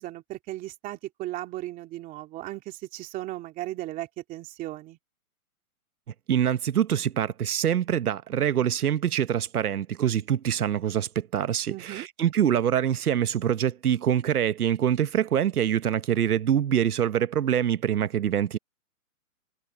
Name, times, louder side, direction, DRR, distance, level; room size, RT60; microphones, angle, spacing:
voice 1, 0.0-5.0 11.7-12.1, right 16 dB, 20° right, 2.7 m, -36 dB
voice 2, 6.3-18.6, right 9 dB, 90° right, 1.2 m, -25 dB
hypercardioid pair, 160°, 43 cm